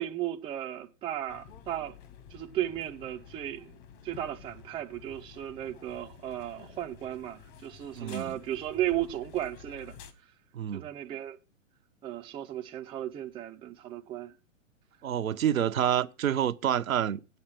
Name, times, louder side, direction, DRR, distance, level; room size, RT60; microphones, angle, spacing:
voice 1, 0.0-1.9 2.3-3.7 4.0-9.9 10.7-11.4 12.0-14.3, right 12 dB, 15° right, 0.5 m, -35 dB
sound 1, 1.3-10.1, left 7 dB, 40° left, 1.8 m, -51 dB
voice 2, 7.9-8.4 10.5-10.8 15.0-17.2, right 10 dB, 80° right, 0.8 m, -28 dB
8.6 x 7.9 x 5.9 m
hypercardioid pair, 120°, 40 cm